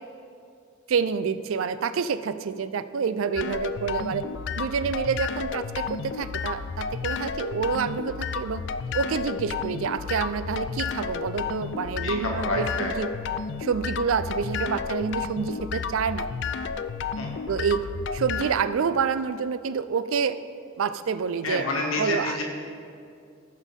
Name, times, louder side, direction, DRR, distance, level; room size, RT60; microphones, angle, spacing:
voice 1, 0.9-4.2 4.6-8.6 8.9-13.1 13.6-16.3 17.5-17.9 18.1-20.4 20.8-21.7 22.0-22.4, right 6 dB, 75° right, 13 dB, 0.4 m, -27 dB
sound 1, 3.4-18.5, left 6 dB, 60° left, 0.3 m, -32 dB
voice 2, 12.0-12.9 17.1-17.3 21.4-22.4, left 2 dB, 85° left, 0 dB, 1.5 m, -28 dB
15.5 x 5.4 x 3.7 m, 2.4 s
head